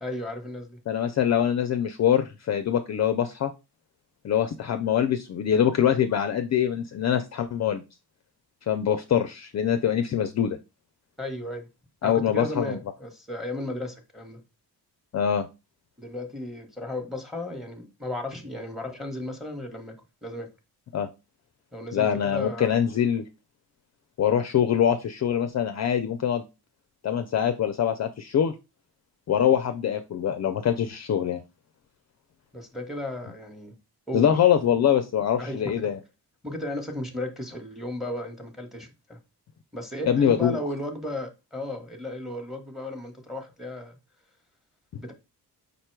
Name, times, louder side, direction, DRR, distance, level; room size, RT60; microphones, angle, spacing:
voice 1, 0.0-0.8 11.2-11.7 12.0-14.4 16.0-19.9 20.2-20.5 21.7-22.7 32.5-33.7 34.1-34.2 35.4-35.9 36.4-39.2 39.7-44.0 45.0-45.1, left 1 dB, ahead, 1.0 m, -34 dB
voice 2, 0.9-3.5 4.2-7.8 8.7-10.6 12.0-12.8 15.1-15.5 20.9-21.1 21.9-23.2 24.2-26.4 27.0-28.5 29.3-31.4 34.1-36.0 40.1-40.6, left 9 dB, 45° left, 0.4 m, -24 dB
5.2 x 2.2 x 4.4 m
cardioid pair, 120°, 40 cm